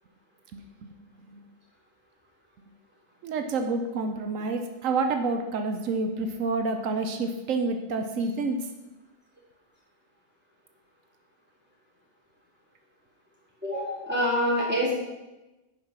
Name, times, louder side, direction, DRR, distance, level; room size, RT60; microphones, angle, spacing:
voice 1, 3.2-8.6, right 3 dB, 85° right, 6 dB, 1.1 m, -28 dB
voice 2, 13.6-14.9, equal, 10° right, -7 dB, 3.7 m, -26 dB
10.5 x 5.3 x 5.9 m, 1.1 s
omnidirectional pair, 1.4 m